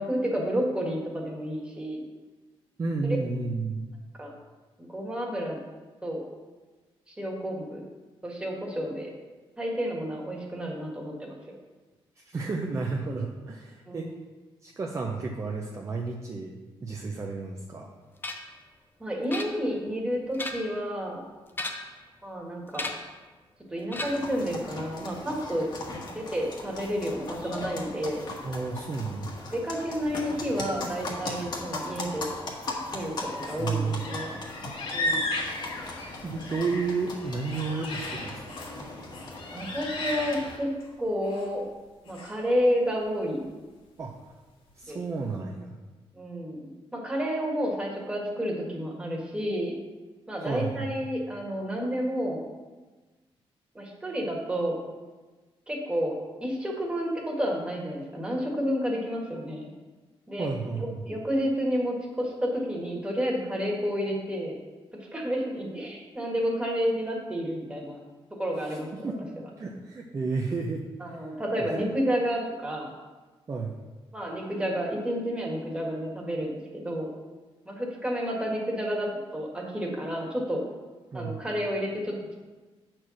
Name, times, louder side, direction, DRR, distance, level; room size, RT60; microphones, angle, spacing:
voice 1, 0.0-2.0 3.0-3.2 4.2-4.3 4.8-5.6 6.0-6.2 7.1-7.8 8.2-9.1 9.6-11.3 13.9-14.1 19.0-21.2 22.2-22.9 23.7-25.7 26.0-28.2 29.5-32.3 32.9-34.3 34.9-35.3 39.5-40.7 41.0-41.6 42.0-43.5 44.9-45.0 46.1-49.7 50.3-52.4 53.7-54.8 55.7-59.7 60.3-64.6 65.0-68.0 68.4-69.1 71.0-72.9 74.1-77.1 77.6-80.6 81.1-82.4, equal, 10° right, -2 dB, 1.6 m, -30 dB
voice 2, 2.8-3.8 12.2-14.1 14.6-16.5 16.8-17.9 28.4-29.3 33.6-34.0 36.2-38.5 44.0-44.1 44.8-45.8 50.4-50.9 60.4-61.0 68.6-71.2 73.5-73.7 81.1-81.4, right 4 dB, 30° right, 0 dB, 0.6 m, -32 dB
sound 1, 18.2-18.6 19.3-19.9 20.2-20.8 21.5-22.0 22.7-23.2 23.9-24.4, left 2 dB, 20° left, 0.7 m, -36 dB
sound 2, 24.0-40.6, left 2 dB, 50° left, 1.5 m, -38 dB
sound 3, 33.0-33.6 33.9-36.6 37.0-38.8 39.1-40.9 41.2-41.5 42.1-42.3, left 1 dB, 75° left, 2.3 m, -35 dB
8.2 x 4.4 x 6.2 m, 1.3 s
wide cardioid pair, 145°, 10 cm